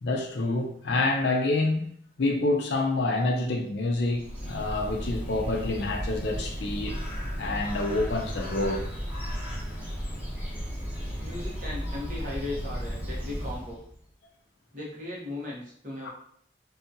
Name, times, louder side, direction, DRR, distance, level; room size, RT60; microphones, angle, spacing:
voice 1, 0.0-1.9 2.2-7.0 7.4-8.9, left 2 dB, 85° left, 0.5 m, -27 dB
Bird, 3.9-13.9, equal, 10° right, 0.8 m, -34 dB
voice 2, 11.2-13.8 14.7-16.1, left 2 dB, 45° right, 0.9 m, -37 dB
2.7 x 2.3 x 2.7 m
head